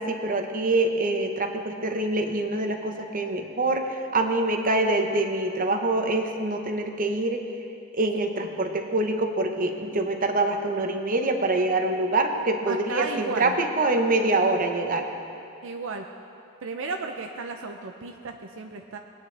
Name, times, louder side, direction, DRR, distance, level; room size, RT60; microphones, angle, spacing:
voice 1, 0.0-7.5 7.9-15.1, right 2 dB, 40° right, 5 dB, 0.9 m, -25 dB
voice 2, 12.7-13.6 15.6-16.0 16.6-19.0, right 4 dB, 65° right, 4 dB, 0.5 m, -34 dB
20.0 x 9.1 x 3.3 m, 2.7 s
head